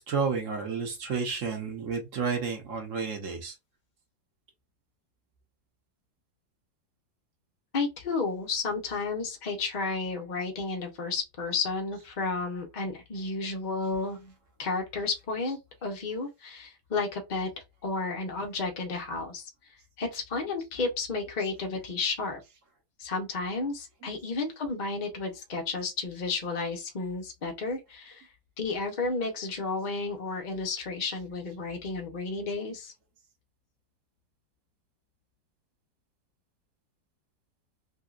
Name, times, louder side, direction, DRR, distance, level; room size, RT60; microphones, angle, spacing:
voice 1, 0.0-3.6 24.0-24.2, right 5 dB, 55° right, 1.0 m, -31 dB
voice 2, 7.7-14.3 14.6-17.5 17.8-19.5 20.0-22.4 23.0-28.3 28.6-32.9, left 3 dB, 60° left, 0.4 m, -32 dB
3.5 x 2.7 x 2.4 m
omnidirectional pair, 2.0 m